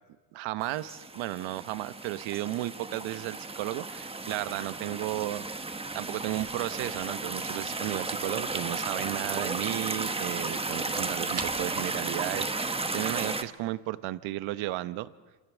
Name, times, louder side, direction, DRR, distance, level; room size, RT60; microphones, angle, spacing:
voice 1, 0.3-5.4 5.9-15.1, right 16 dB, 65° right, 14 dB, 1.1 m, -34 dB
sound 1, 0.6-13.4, right 3 dB, 10° right, 1.2 m, -34 dB
sound 2, 4.3-13.2, right 6 dB, 30° right, 1.6 m, -49 dB
27.0 x 27.0 x 7.3 m, 1.3 s
cardioid pair, 115°, 50 cm